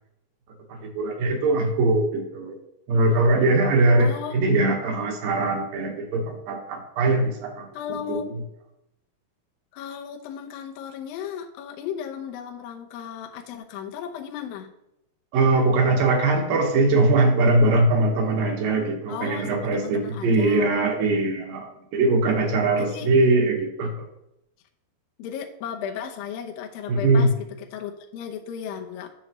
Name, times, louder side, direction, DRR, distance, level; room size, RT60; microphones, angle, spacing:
voice 1, 0.7-2.6 2.9-8.2 15.3-24.0 26.9-27.3, right 2 dB, 65° right, 2 dB, 2.7 m, -21 dB
voice 2, 4.0-4.4 7.7-8.3 9.7-14.7 19.1-20.7 22.8-23.1 25.2-27.3 27.7-29.1, left 8 dB, 75° left, 1 dB, 2.3 m, -35 dB
10.0 x 6.3 x 3.1 m, 0.84 s
omnidirectional pair, 4.8 m